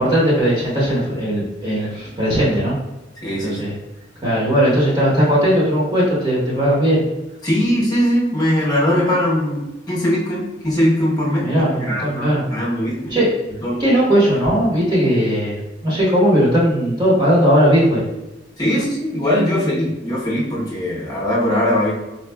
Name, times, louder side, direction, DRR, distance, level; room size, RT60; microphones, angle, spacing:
voice 1, 0.0-2.8 3.4-3.7 4.2-7.0 11.4-12.5 13.1-13.3 13.8-18.0, equal, 20° right, -7 dB, 0.9 m, -17 dB
voice 2, 3.2-3.6 7.4-11.5 11.8-13.2 13.6-13.8 18.6-21.9, equal, 20° left, -6 dB, 0.9 m, -20 dB
4.2 x 2.3 x 2.2 m, 1.0 s
head